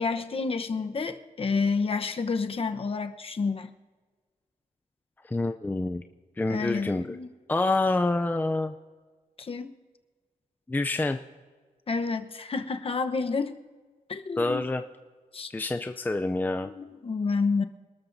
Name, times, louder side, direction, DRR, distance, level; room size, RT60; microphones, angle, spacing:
voice 1, 0.0-3.7 6.5-7.3 9.4-9.7 11.9-13.5 14.1-14.7 15.3-15.5 16.6-17.6, left 4 dB, 40° left, 8 dB, 0.9 m, -29 dB
voice 2, 5.2-6.0 6.4-7.2 7.5-8.8 10.7-11.2 14.4-14.8 15.5-16.7, left 2 dB, 15° left, 7 dB, 0.5 m, -27 dB
27.0 x 13.0 x 2.7 m, 1.4 s
wide cardioid pair, 125°, 15 cm